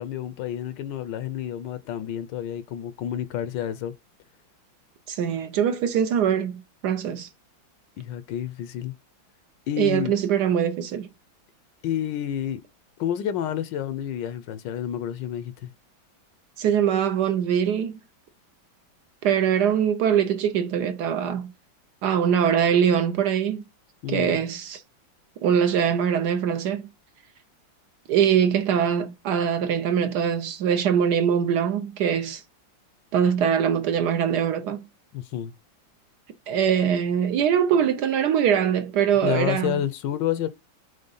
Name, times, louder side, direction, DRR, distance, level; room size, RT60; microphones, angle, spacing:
voice 1, 0.0-3.9 8.0-8.9 9.7-10.2 11.8-12.6 13.0-15.7 24.0-24.4 35.1-35.5 39.2-40.5, left 10 dB, 75° left, 1.2 m, -29 dB
voice 2, 5.1-7.3 9.8-11.1 16.6-18.0 19.2-21.5 22.0-23.6 24.1-24.8 25.4-26.9 28.1-32.4 33.1-34.8 36.5-39.7, right 8 dB, 70° right, 1.1 m, -22 dB
5.2 x 3.8 x 5.4 m
omnidirectional pair, 2.2 m